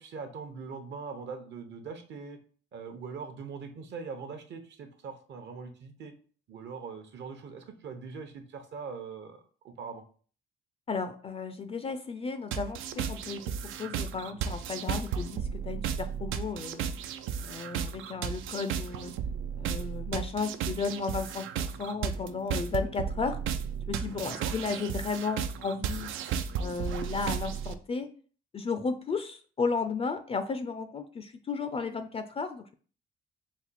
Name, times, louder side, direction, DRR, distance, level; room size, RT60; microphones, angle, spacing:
voice 1, 0.0-2.4 2.7-6.1 6.5-10.0 24.2-24.5, right 5 dB, 60° right, 7 dB, 0.8 m, -42 dB
voice 2, 10.9-13.5 13.8-16.9 17.4-19.1 19.6-23.4 23.9-26.1 26.6-28.1 28.5-32.7, left 4 dB, 30° left, 9 dB, 0.3 m, -34 dB
sound 1, 12.5-27.7, right 7 dB, 85° right, 0.4 m, -34 dB
4.1 x 2.3 x 4.1 m, 0.43 s
cardioid pair, 90°, 20 cm